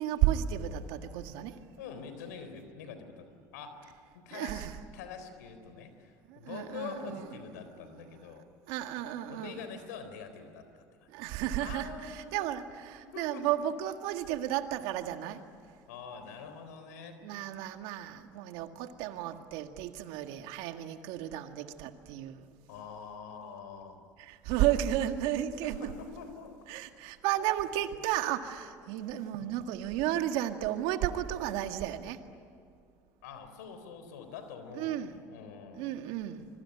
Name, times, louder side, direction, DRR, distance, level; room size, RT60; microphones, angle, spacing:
voice 1, 0.0-1.5 4.3-4.7 6.3-7.3 8.7-9.6 11.1-15.4 17.2-22.5 24.2-25.9 26.7-32.2 34.8-35.1 35.8-36.5, right 12 dB, 75° right, 7 dB, 1.9 m, -33 dB
voice 2, 1.8-3.3 3.5-4.7 4.9-8.5 9.3-11.1 11.6-12.6 13.0-13.7 15.9-17.2 22.7-24.0 25.6-26.6 33.2-35.9, left 6 dB, 85° left, 9 dB, 3.9 m, -45 dB
25.5 x 22.5 x 9.9 m, 2.3 s
hypercardioid pair, 80°, 9 cm